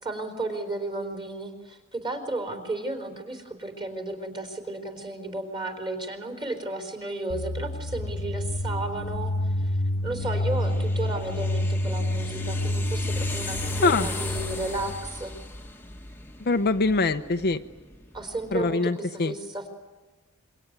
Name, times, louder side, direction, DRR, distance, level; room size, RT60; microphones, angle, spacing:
voice 1, 0.0-9.7 10.0-15.4 18.1-19.7, right 2 dB, 20° right, 4 dB, 4.1 m, -33 dB
sound 1, 7.3-15.0, left 1 dB, 80° left, 1.1 m, -29 dB
sound 2, 10.2-18.8, left 2 dB, 10° left, 1.4 m, -38 dB
voice 2, 16.4-17.6 18.5-19.3, left 3 dB, 45° left, 8 dB, 0.8 m, -23 dB
26.0 x 23.5 x 9.5 m, 1.2 s
head